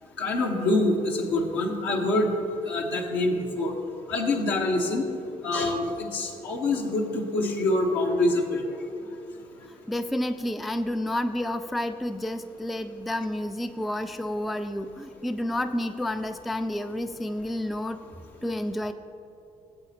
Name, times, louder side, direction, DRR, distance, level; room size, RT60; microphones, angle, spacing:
voice 1, 0.2-2.3 2.7-3.7 4.1-5.1 5.4-8.6, left 2 dB, 70° left, 0 dB, 1.3 m, -25 dB
voice 2, 9.9-18.0 18.4-18.9, left 1 dB, ahead, 10 dB, 0.4 m, -30 dB
18.0 x 8.1 x 3.0 m, 2.7 s
figure-of-eight pair, 40°, 19 cm